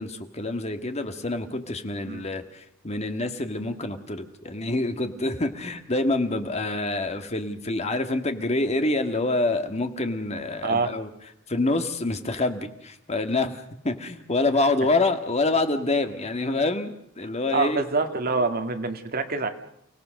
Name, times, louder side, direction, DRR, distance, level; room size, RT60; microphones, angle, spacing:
voice 1, 0.0-2.4 2.8-11.1 11.5-17.8, left 2 dB, 30° left, 7 dB, 1.8 m, -26 dB
voice 2, 10.6-10.9 17.5-19.5, right 3 dB, 50° right, 6 dB, 2.0 m, -25 dB
30.0 x 17.5 x 6.6 m, 0.73 s
head